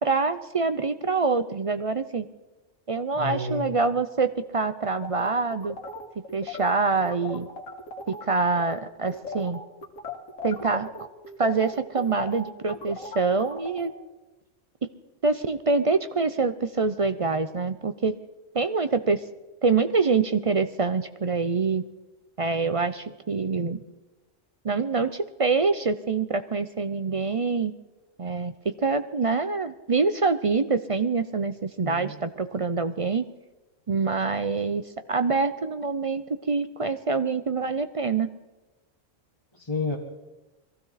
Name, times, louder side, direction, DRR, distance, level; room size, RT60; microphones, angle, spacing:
voice 1, 0.0-2.3 2.9-5.8 6.3-7.5 8.2-9.6 10.4-10.9 11.4-13.9 15.2-18.2 18.5-19.2 19.6-21.8 22.4-23.8 24.6-27.7 28.2-28.5 28.8-33.2 33.9-38.3, right 4 dB, 45° right, 10 dB, 0.4 m, -25 dB
voice 2, 3.2-3.7 31.8-32.2 39.5-40.0, left 3 dB, 20° left, -2 dB, 1.5 m, -30 dB
sound 1, 5.0-8.2 8.5-8.8 9.1-13.9, left 3 dB, 90° left, 2.1 m, -38 dB
22.5 x 15.5 x 4.1 m, 1.1 s
omnidirectional pair, 1.3 m